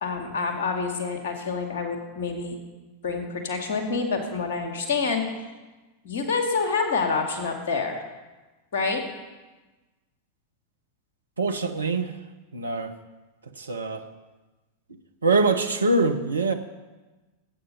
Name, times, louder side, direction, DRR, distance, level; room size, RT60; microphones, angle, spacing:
voice 1, 0.0-2.6 3.0-5.2 6.0-8.0 8.7-9.0, left 4 dB, 55° left, 4 dB, 2.2 m, -27 dB
voice 2, 11.4-12.1 12.5-12.9 13.6-14.0 15.2-16.5, right 3 dB, 75° right, 6 dB, 1.1 m, -23 dB
18.5 x 8.7 x 5.3 m, 1.2 s
figure-of-eight pair, 90°, 0 cm